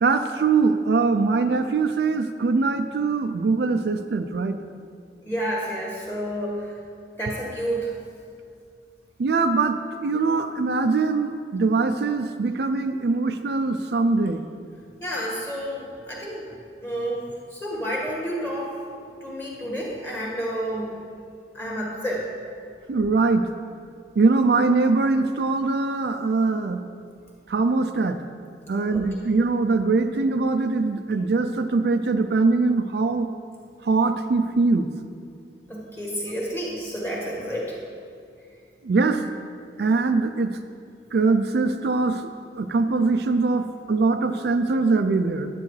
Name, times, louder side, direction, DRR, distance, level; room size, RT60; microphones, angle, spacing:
voice 1, 0.0-4.6 9.2-14.4 22.9-23.5 24.2-26.8 27.5-28.2 28.7-33.3 33.8-34.9 38.8-39.2 39.8-40.6 41.1-45.5, right 3 dB, 60° right, 7 dB, 0.4 m, -22 dB
voice 2, 5.2-6.7 7.2-7.9 15.0-16.5 16.8-18.8 19.2-21.0 21.5-22.2 28.9-29.0 35.7-37.8, equal, 10° left, -4 dB, 1.6 m, -30 dB
10.0 x 9.3 x 3.2 m, 2.3 s
head